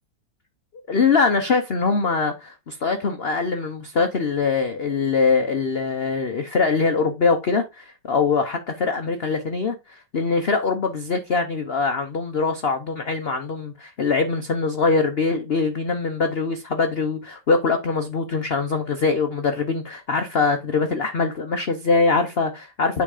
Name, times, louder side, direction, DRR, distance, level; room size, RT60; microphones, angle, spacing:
voice 1, 0.9-23.0, left 4 dB, 45° left, 0.8 m, -23 dB
9.1 x 3.7 x 4.9 m
omnidirectional pair, 2.1 m